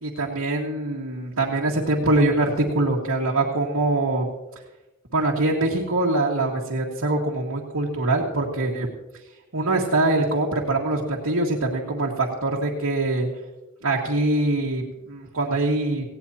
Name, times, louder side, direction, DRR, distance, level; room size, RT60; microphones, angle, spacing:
voice 1, 0.0-4.3 5.1-8.9 9.5-13.3 13.8-16.0, right 2 dB, 90° right, -4 dB, 1.9 m, -23 dB
18.5 x 16.5 x 2.9 m, 1.0 s
head